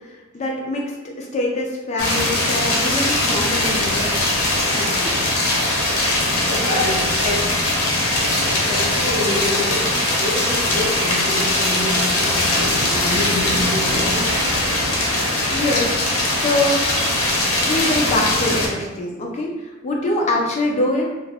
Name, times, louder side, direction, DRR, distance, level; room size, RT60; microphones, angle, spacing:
voice 1, 0.3-4.1 4.7-5.3 15.5-16.9 17.6-21.1, left 1 dB, 30° left, -1 dB, 0.3 m, -24 dB
sound 1, 2.0-18.7, left 1 dB, 85° left, 0.7 m, -20 dB
voice 2, 6.3-7.5 8.7-14.2 20.2-20.4, left 1 dB, 35° right, -4 dB, 0.7 m, -27 dB
2.3 x 2.1 x 3.2 m, 1.1 s
head